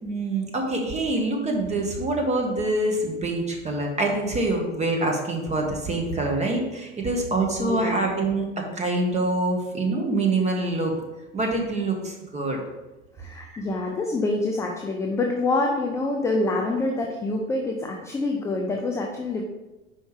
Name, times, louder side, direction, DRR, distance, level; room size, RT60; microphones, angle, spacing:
voice 1, 0.0-8.4 8.7-11.0 11.3-12.6 13.5-13.6, right 2 dB, 15° right, 1 dB, 1.3 m, -25 dB
voice 2, 7.6-8.1 13.2-19.4, left 2 dB, 10° left, 1 dB, 0.3 m, -26 dB
5.2 x 4.7 x 4.8 m, 1.1 s
hypercardioid pair, 95°, 39 cm